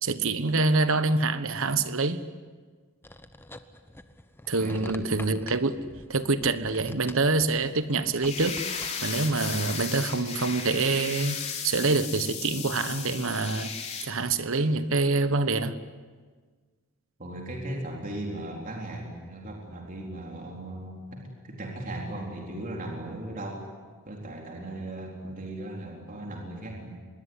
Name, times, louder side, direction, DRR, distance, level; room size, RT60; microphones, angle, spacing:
voice 1, 0.0-2.2 4.5-5.8 6.1-8.6 9.0-11.4 11.6-13.7 14.0-15.7, right 3 dB, 60° right, 12 dB, 1.2 m, -26 dB
sound 1, 3.0-10.0, left 1 dB, 10° left, 1.0 m, -47 dB
voice 2, 4.6-5.0 17.2-21.2 21.4-23.6 24.0-27.0, right 1 dB, 35° right, 0 dB, 4.1 m, -37 dB
sound 2, 8.2-14.1, left 6 dB, 30° left, 3.6 m, -35 dB
25.5 x 21.5 x 9.8 m, 1.5 s
head